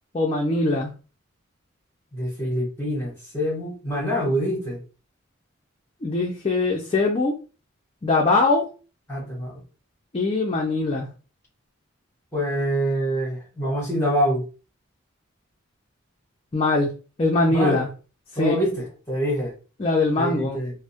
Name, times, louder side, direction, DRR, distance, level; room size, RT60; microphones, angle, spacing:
voice 1, 0.1-0.9 6.0-7.3 8.0-8.6 10.1-11.1 16.5-16.9 17.2-17.9 18.3-18.6 19.8-20.6, left 3 dB, 30° left, -1 dB, 0.4 m, -22 dB
voice 2, 2.1-4.8 9.1-9.6 12.3-14.4 17.5-17.8 18.4-19.5 20.1-20.7, equal, 10° left, -6 dB, 1.0 m, -25 dB
2.2 x 2.0 x 2.7 m, 0.35 s
head